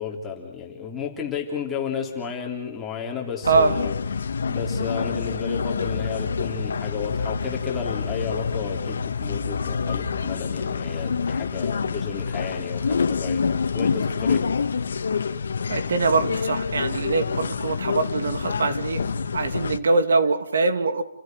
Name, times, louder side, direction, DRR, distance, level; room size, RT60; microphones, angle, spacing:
voice 1, 0.0-3.9 4.5-13.4 13.7-14.4, left 6 dB, 10° left, -1 dB, 3.3 m, -32 dB
sound 1, 3.4-19.8, left 5 dB, 85° left, 1.6 m, -27 dB
voice 2, 15.7-19.0 19.3-21.0, right 3 dB, 90° right, 10 dB, 2.7 m, -23 dB
29.5 x 16.0 x 9.2 m, 0.76 s
hypercardioid pair, 175°, 0 cm